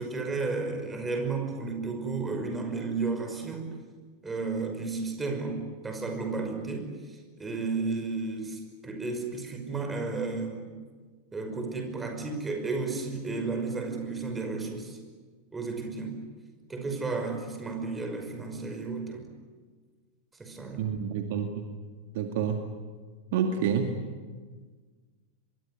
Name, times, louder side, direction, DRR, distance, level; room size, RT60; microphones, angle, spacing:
voice 1, 0.0-3.7 4.2-10.7 11.3-15.0 15.5-16.2 16.7-19.3 20.4-20.9, right 3 dB, 15° right, 5 dB, 5.7 m, -33 dB
voice 2, 20.8-21.7 22.1-22.6 23.3-23.9, right 7 dB, 50° right, 4 dB, 2.1 m, -28 dB
25.5 x 22.5 x 9.9 m, 1.5 s
figure-of-eight pair, 90°, 0 cm